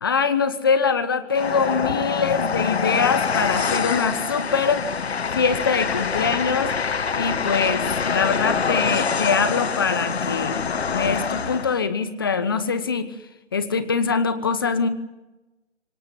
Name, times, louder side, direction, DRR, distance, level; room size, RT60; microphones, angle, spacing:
voice 1, 0.0-4.8 5.3-13.1 13.5-14.9, left 5 dB, 20° left, 13 dB, 0.9 m, -23 dB
Train, 1.3-11.8, left 5 dB, 60° left, 1.2 m, -25 dB
25.0 x 19.0 x 9.6 m, 1.1 s
figure-of-eight pair, 165°, 37 cm